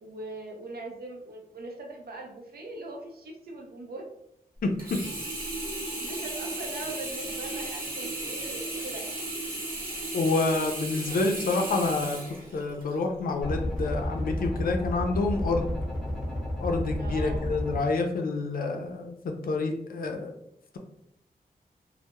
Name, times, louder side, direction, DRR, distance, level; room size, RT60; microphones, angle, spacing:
voice 1, 0.0-4.1 5.6-5.7 6.0-9.1 11.0-11.2 17.0-17.4, right 2 dB, 90° right, 1 dB, 0.5 m, -41 dB
voice 2, 4.6-5.0 10.1-12.2 12.5-15.7 16.6-20.3, left 3 dB, 70° left, 4 dB, 0.4 m, -28 dB
Sink (filling or washing), 4.8-13.0 13.6-13.7, right 2 dB, 65° right, 0.9 m, -35 dB
sound 1, 13.4-17.8, left 1 dB, ahead, 0.6 m, -31 dB
2.2 x 2.0 x 2.9 m, 0.77 s
wide cardioid pair, 165°, 16 cm